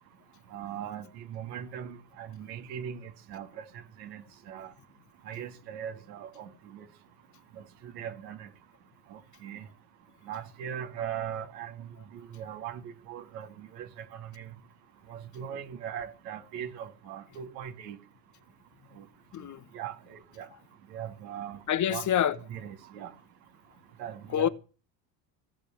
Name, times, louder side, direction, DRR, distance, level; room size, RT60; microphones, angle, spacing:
voice 1, 0.5-3.6 4.0-4.7 5.3-6.9 7.8-8.5 9.1-9.7 10.3-11.9 12.1-13.5 13.8-14.5 15.1-18.0 19.0-19.1 19.7-20.5 20.9-21.6 21.9-22.0 22.5-23.1 24.0-24.5, right 9 dB, 75° right, 2.6 m, -40 dB
voice 2, 19.3-19.6 21.7-22.4 24.3-24.5, left 10 dB, 35° left, 1.0 m, -26 dB
16.0 x 6.9 x 9.0 m
hypercardioid pair, 70°, 50 cm